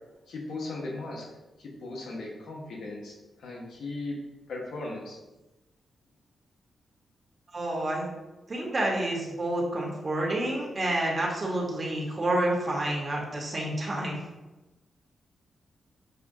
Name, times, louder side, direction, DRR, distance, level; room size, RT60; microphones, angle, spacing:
voice 1, 0.3-1.3 1.6-4.2 4.5-5.2, left 2 dB, 85° left, -1 dB, 1.0 m, -37 dB
voice 2, 7.5-8.1 8.5-14.2, right 1 dB, 35° right, -2 dB, 1.2 m, -29 dB
6.7 x 2.3 x 2.7 m, 1.0 s
cardioid pair, 85°, 0 cm